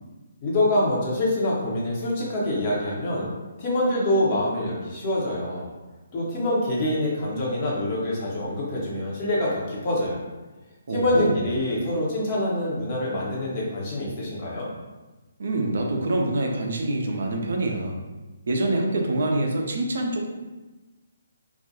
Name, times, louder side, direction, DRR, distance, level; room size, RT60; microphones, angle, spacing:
voice 1, 0.4-3.3 3.6-5.7 6.1-10.2 10.9-14.7, left 1 dB, 35° left, -5 dB, 0.7 m, -25 dB
voice 2, 10.9-11.4 15.4-18.0 18.5-20.3, right 2 dB, 55° right, 1 dB, 0.4 m, -25 dB
2.3 x 2.2 x 2.7 m, 1.2 s
figure-of-eight pair, 135°, 0 cm